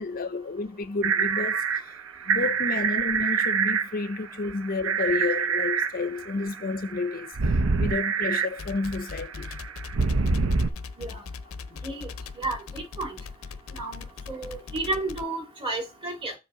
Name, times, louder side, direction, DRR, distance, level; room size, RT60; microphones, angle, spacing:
voice 1, 0.0-1.9 2.2-7.3 7.8-9.5 11.7-11.8 13.7-13.8, left 3 dB, 40° left, 0.6 m, -30 dB
sound 1, 1.0-10.7, right 5 dB, 70° right, 0.7 m, -26 dB
sound 2, 8.5-15.3, left 4 dB, 85° left, 0.6 m, -39 dB
voice 2, 12.4-13.1 13.7-16.3, right 2 dB, 25° right, 2.2 m, -32 dB
7.3 x 3.2 x 6.0 m
head